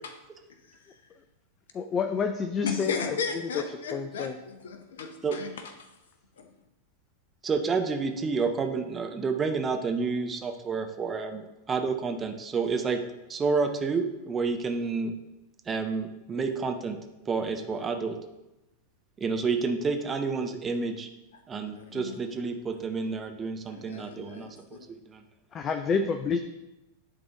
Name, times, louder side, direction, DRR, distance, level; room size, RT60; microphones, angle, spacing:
voice 1, 0.7-1.0 2.6-5.5 6.4-6.5 21.7-22.2 23.7-24.8, left 5 dB, 60° left, 6 dB, 0.8 m, -35 dB
voice 2, 1.7-3.6 3.9-4.4 25.5-26.4, left 5 dB, 25° left, 8 dB, 0.4 m, -29 dB
voice 3, 7.4-13.0 13.3-15.1 15.7-17.0 17.3-18.2 19.2-21.1 21.5-25.2, right 4 dB, 20° right, 5 dB, 0.7 m, -29 dB
10.5 x 4.0 x 3.7 m, 0.97 s
figure-of-eight pair, 90°, 0 cm